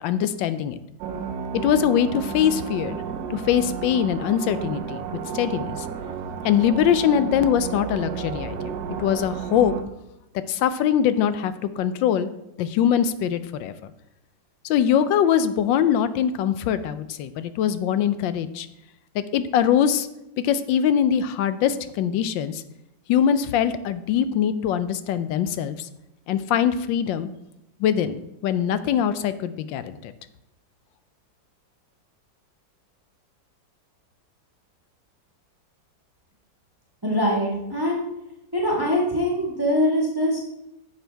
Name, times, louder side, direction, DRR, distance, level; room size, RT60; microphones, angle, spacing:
voice 1, 0.0-0.8 1.6-3.0 3.3-5.0 5.3-5.8 6.4-8.6 8.9-9.7 10.5-12.3 12.6-13.7 14.6-18.7 19.1-20.1 20.4-22.6 23.1-25.9 26.3-27.3 27.8-30.1, left 9 dB, 80° left, 13 dB, 1.3 m, -22 dB
sound 1, 1.0-9.8, right 7 dB, 65° right, 1.1 m, -32 dB
voice 2, 37.0-38.0 38.5-40.4, equal, 15° right, -3 dB, 1.5 m, -23 dB
10.5 x 7.3 x 3.4 m, 0.88 s
omnidirectional pair, 2.1 m